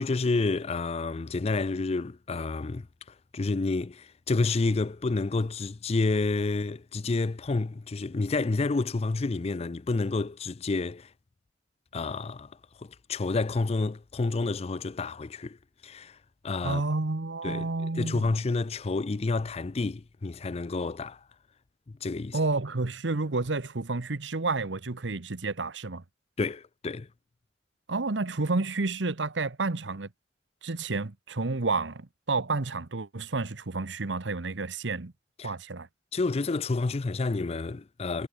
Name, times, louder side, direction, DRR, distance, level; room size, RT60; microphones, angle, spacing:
voice 1, 0.0-2.9 3.3-11.1 11.9-12.5 12.8-15.6 15.8-16.2 16.4-16.8 17.4-17.7 17.9-21.2 22.0-22.4 26.4-27.1 35.4-35.5 36.1-38.3, left 3 dB, 35° left, 0.5 m, -29 dB
voice 2, 16.6-18.3 22.3-26.0 27.9-30.1 30.6-35.1 35.4-35.9, right 3 dB, 85° right, 1.1 m, -30 dB
head